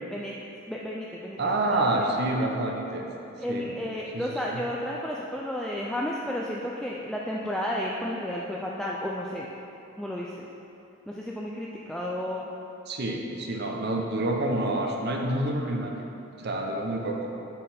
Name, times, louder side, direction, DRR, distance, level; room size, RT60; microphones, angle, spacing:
voice 1, 0.7-1.4 1.7-2.0 3.4-9.5 10.0-10.5 11.1-12.5, left 1 dB, 5° left, -4 dB, 0.3 m, -32 dB
voice 2, 1.4-3.0 3.5-3.7 4.1-4.2 4.5-4.6 12.9-16.0 16.4-17.3, right 1 dB, 50° right, 1 dB, 0.8 m, -28 dB
9.9 x 4.1 x 4.3 m, 2.8 s
head